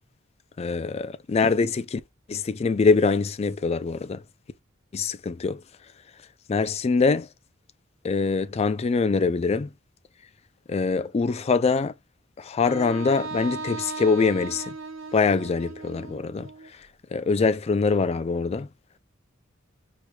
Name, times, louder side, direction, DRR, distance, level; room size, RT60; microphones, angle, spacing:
voice 1, 0.6-2.0 2.3-4.2 4.9-5.6 6.5-7.3 8.0-9.7 10.7-11.9 12.4-14.7 15.1-16.5 17.1-18.7, left 4 dB, 30° left, 0.3 m, -23 dB
Wind instrument woodwind instrument, 12.7-16.7, right 3 dB, 75° right, 0.6 m, -37 dB
4.7 x 3.1 x 2.2 m
head